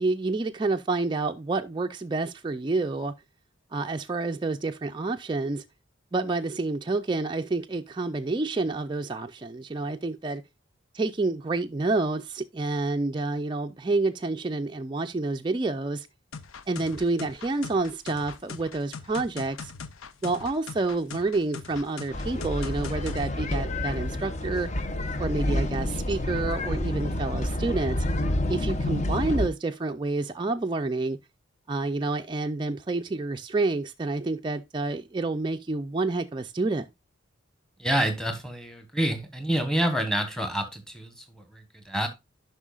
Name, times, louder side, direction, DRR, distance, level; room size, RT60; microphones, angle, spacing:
voice 1, 0.0-3.1 3.7-5.6 6.1-10.4 10.9-16.1 16.7-19.7 20.2-24.7 25.2-28.0 28.5-31.2 31.7-36.9, right 3 dB, 20° right, 0.3 m, -28 dB
sound 1, 16.3-23.3, left 5 dB, 85° left, 0.6 m, -41 dB
sound 2, 22.1-29.5, left 1 dB, 35° left, 0.6 m, -28 dB
voice 2, 37.8-42.1, right 1 dB, 5° left, 1.1 m, -28 dB
11.0 x 5.5 x 2.3 m
head